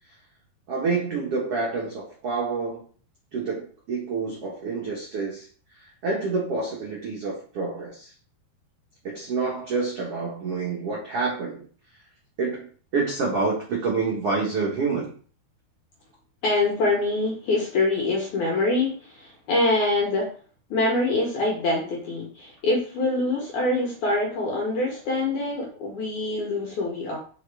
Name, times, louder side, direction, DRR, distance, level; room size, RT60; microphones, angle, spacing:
voice 1, 0.7-2.8 3.3-5.5 5.7-8.1 9.0-11.6 12.4-12.7 12.9-15.1, right 4 dB, 85° right, -4 dB, 1.3 m, -28 dB
voice 2, 16.4-20.3 20.7-27.2, left 2 dB, 70° left, -2 dB, 1.9 m, -25 dB
5.7 x 4.9 x 3.4 m, 0.43 s
omnidirectional pair, 4.8 m